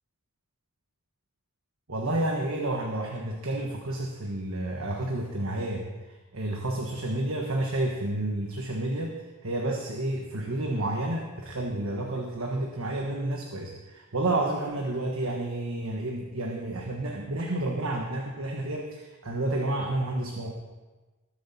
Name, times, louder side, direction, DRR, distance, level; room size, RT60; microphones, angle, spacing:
voice 1, 1.9-9.2 9.4-20.5, right 1 dB, 70° right, 1 dB, 1.4 m, -30 dB
20.0 x 7.7 x 4.3 m, 1.2 s
head